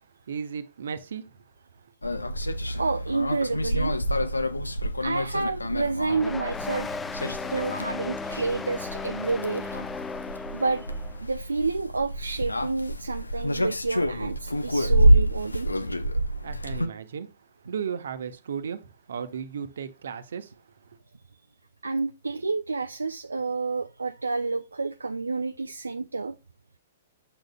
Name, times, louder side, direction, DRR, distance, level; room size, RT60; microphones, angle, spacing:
voice 1, 0.3-1.3 16.4-17.3 17.7-20.5, right 7 dB, 65° right, 0.9 m, -35 dB
sound 1, 2.0-16.9, right 1 dB, 85° left, 0.6 m, -27 dB
voice 2, 2.7-4.0 4.7-7.0 7.5-9.8 10.5-15.7 21.8-26.4, right 3 dB, 80° right, 0.4 m, -29 dB
sound 2, 6.1-11.2, left 4 dB, 10° left, 0.3 m, -35 dB
7.9 x 6.4 x 2.3 m
figure-of-eight pair, 110°, 0 cm